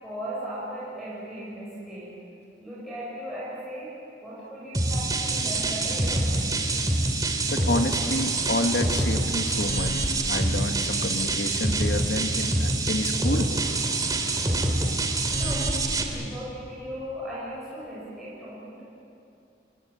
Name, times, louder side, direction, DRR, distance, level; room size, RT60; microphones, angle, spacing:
voice 1, 0.0-2.2 2.6-3.9 4.2-6.8 15.3-15.8 16.0-18.8, equal, ahead, -9 dB, 7.3 m, -37 dB
sound 1, 4.7-16.0, right 2 dB, 20° right, 2.5 m, -26 dB
voice 2, 7.5-13.5, left 1 dB, 65° left, 5 dB, 1.9 m, -29 dB
28.5 x 22.0 x 9.2 m, 2.6 s
head